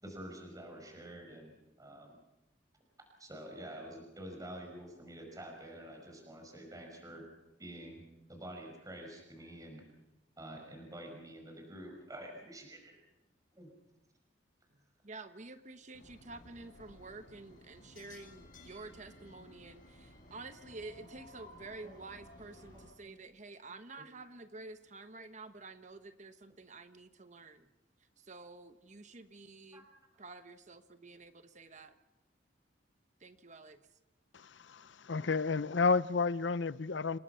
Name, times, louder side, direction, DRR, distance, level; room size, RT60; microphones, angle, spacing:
voice 1, 0.0-1.5 1.8-2.1 3.2-7.3 7.6-8.0 8.3-9.8 10.4-13.0 13.6-13.7 21.8-22.0 29.7-29.8, right 1 dB, 20° right, 2 dB, 5.2 m, -48 dB
voice 2, 15.0-27.7 28.2-29.9 30.2-31.9 33.2-33.8, right 3 dB, 40° right, 10 dB, 1.1 m, -50 dB
sound 1, 15.9-22.9, left 1 dB, 50° left, 6.3 m, -56 dB
voice 3, 34.3-37.2, left 4 dB, 85° left, 17 dB, 0.7 m, -31 dB
28.5 x 20.0 x 5.7 m, 0.96 s
head